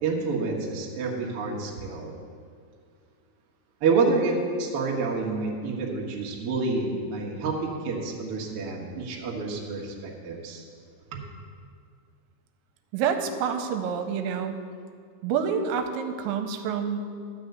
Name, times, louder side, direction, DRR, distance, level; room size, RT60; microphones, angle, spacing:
voice 1, 0.0-2.1 3.8-10.7 11.1-11.2, right 4 dB, 70° right, -2 dB, 1.3 m, -28 dB
voice 2, 12.9-14.6 15.2-17.2, right 7 dB, 85° right, 6 dB, 3.0 m, -28 dB
12.0 x 6.1 x 7.9 m, 2.2 s
omnidirectional pair, 5.2 m